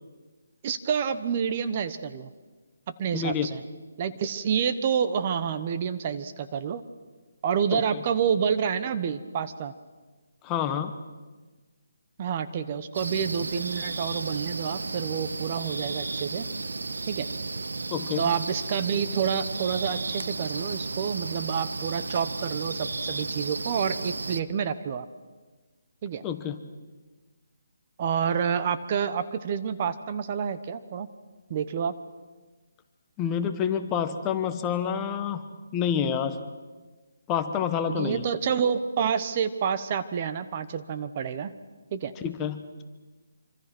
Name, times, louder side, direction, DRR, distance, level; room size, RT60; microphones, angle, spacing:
voice 1, 0.6-2.3 3.0-3.6 4.0-6.8 7.4-9.7 12.2-16.5 17.1-17.3 18.2-25.1 26.0-26.2 28.0-31.1 31.5-31.9 37.9-41.5 41.9-42.1, right 7 dB, 30° right, 11 dB, 1.1 m, -28 dB
voice 2, 3.1-3.5 7.7-7.8 10.4-10.9 17.9-18.2 26.2-26.6 33.2-35.4 35.7-36.4 37.3-38.3 42.2-42.8, left 8 dB, 15° left, 8 dB, 1.2 m, -28 dB
sound 1, 12.9-24.4, right 3 dB, 85° right, 1.2 m, -33 dB
26.0 x 25.5 x 6.1 m, 1.3 s
hypercardioid pair, 165°, 0 cm